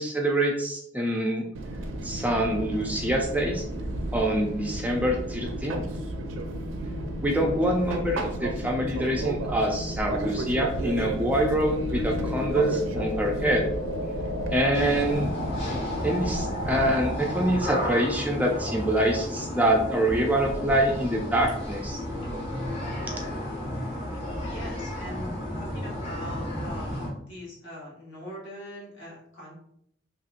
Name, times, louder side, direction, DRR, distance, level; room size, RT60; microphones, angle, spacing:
voice 1, 0.0-1.5 2.0-3.6 4.1-5.8 7.2-13.6 14.5-15.3 16.0-22.0, right 1 dB, 10° right, 1 dB, 0.3 m, -25 dB
Fixed-wing aircraft airplane, 1.5-16.9, right 1 dB, 80° right, 0.4 m, -33 dB
sound 1, 10.6-17.8, left 2 dB, 85° left, 0.5 m, -35 dB
sound 2, 14.7-27.1, left 1 dB, 35° left, 1.1 m, -33 dB
voice 2, 24.4-29.5, equal, 70° left, -4 dB, 1.3 m, -42 dB
2.9 x 2.9 x 2.4 m, 0.71 s
head